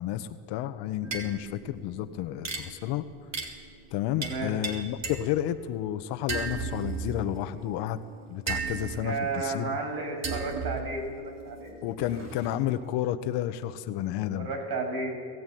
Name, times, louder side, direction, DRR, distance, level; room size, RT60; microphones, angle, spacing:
voice 1, 0.0-3.0 3.9-8.0 8.3-9.8 11.8-14.5, left 12 dB, 80° left, 10 dB, 1.4 m, -31 dB
sound 1, 1.0-5.8 6.3-12.8, right 4 dB, 40° right, 3.4 m, -38 dB
voice 2, 4.2-4.5 9.0-11.7 14.4-15.3, right 3 dB, 60° right, 3 dB, 6.9 m, -33 dB
22.0 x 15.5 x 9.4 m, 2.1 s
supercardioid pair, 95°, 41 cm